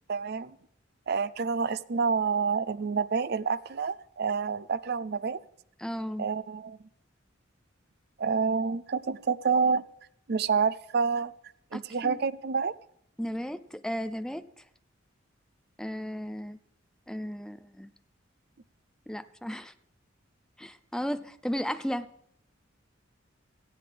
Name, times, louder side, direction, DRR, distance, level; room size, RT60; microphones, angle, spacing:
voice 1, 0.1-0.6 1.1-5.4 6.2-6.8 8.2-9.8 10.3-11.3 11.7-12.7, right 5 dB, 55° right, 16 dB, 0.5 m, -28 dB
voice 2, 5.8-6.3 11.7-12.2 13.2-14.4 15.8-16.6 17.1-17.9 19.1-19.7 20.6-22.1, equal, 5° left, 11 dB, 0.5 m, -34 dB
17.5 x 14.5 x 3.4 m, 0.70 s
head